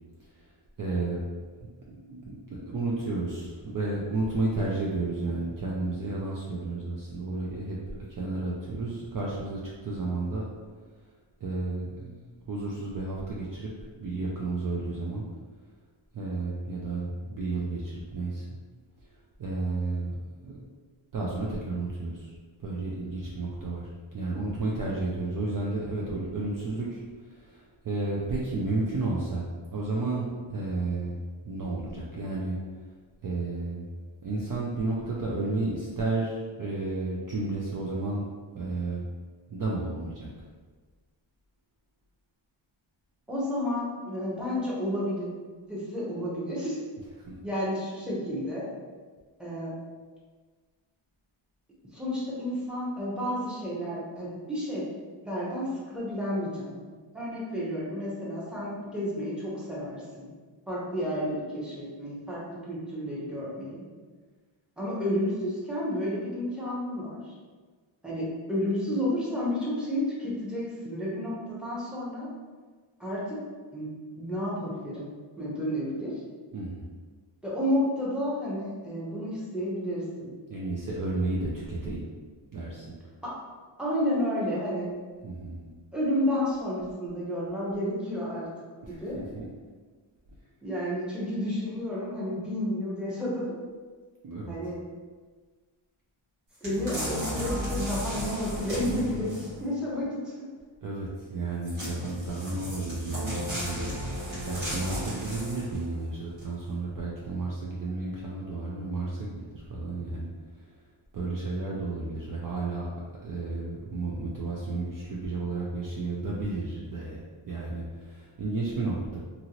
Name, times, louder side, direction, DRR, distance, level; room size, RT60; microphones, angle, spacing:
voice 1, 0.8-1.2 1.6-7.8 8.1-10.5 11.4-13.7 14.0-15.2 16.1-18.6 19.4-20.1 20.4-20.6 21.1-22.3 22.6-29.4 29.7-31.2 31.4-32.6 33.2-33.9 34.2-38.3 38.5-39.0 39.5-40.3 47.3-47.4 76.5-76.9 80.5-82.1 82.5-82.9 85.2-85.6 88.8-89.5 94.2-94.5 100.0-100.1 100.8-103.9 104.4-110.3 110.6-110.7 111.1-112.9 113.2-119.2, right 2 dB, 45° right, -5 dB, 0.4 m, -32 dB
voice 2, 43.3-45.3 45.7-46.8 47.4-48.7 49.4-49.7 51.9-54.8 55.2-60.3 60.7-63.8 64.8-67.3 68.0-72.3 73.0-73.4 73.7-73.9 74.1-75.1 75.4-76.1 77.4-80.3 83.2-83.4 83.8-84.9 85.9-88.5 88.9-89.2 90.6-93.5 94.5-94.8 96.6-100.5, equal, ahead, -7 dB, 0.8 m, -31 dB
sound 1, 96.6-99.6 101.6-105.8 106.4-106.5, equal, 90° right, 1.5 m, -34 dB
2.8 x 2.6 x 2.9 m, 1.5 s
wide cardioid pair, 120°, 50 cm